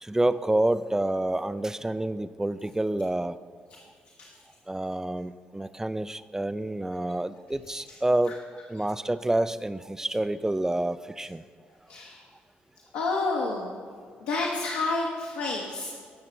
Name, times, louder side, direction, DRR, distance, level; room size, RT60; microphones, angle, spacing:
voice 1, 0.0-3.4 4.7-8.4 8.7-11.4, right 1 dB, 10° right, 14 dB, 0.4 m, -28 dB
voice 2, 11.9-12.2 12.9-13.8 14.2-15.9, left 3 dB, 65° left, -2 dB, 1.0 m, -29 dB
18.0 x 6.6 x 3.3 m, 2.1 s
figure-of-eight pair, 40°, 5 cm